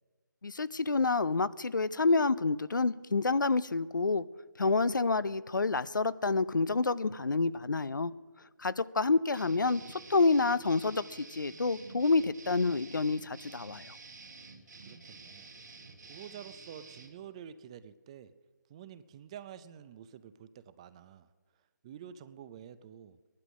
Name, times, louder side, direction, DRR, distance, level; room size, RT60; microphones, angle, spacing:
voice 1, 0.4-4.2 4.6-8.1 8.6-13.9, left 3 dB, 85° left, 17 dB, 0.6 m, -28 dB
sound 1, 9.3-17.1, right 4 dB, 65° right, 2.8 m, -50 dB
voice 2, 14.6-15.5 16.0-18.3 18.7-21.3 21.8-23.2, right 9 dB, 20° right, 14 dB, 0.4 m, -49 dB
16.5 x 11.5 x 6.2 m, 1.4 s
figure-of-eight pair, 155°, 10 cm